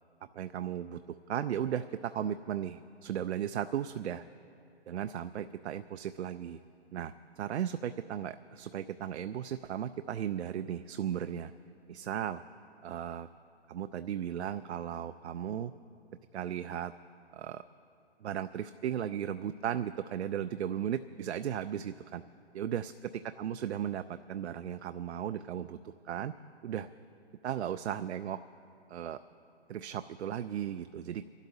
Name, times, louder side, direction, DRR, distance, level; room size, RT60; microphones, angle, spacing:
voice 1, 0.3-4.2 4.9-6.6 6.9-11.5 11.9-12.4 12.8-13.3 13.7-15.7 16.3-16.9 17.3-17.6 18.2-22.2 22.5-22.9 23.4-26.3 26.6-26.9 27.4-28.4 28.9-29.2 29.7-31.2, right 9 dB, 75° right, 10 dB, 0.5 m, -36 dB
28.5 x 12.0 x 2.8 m, 2.7 s
hypercardioid pair, 150°, 33 cm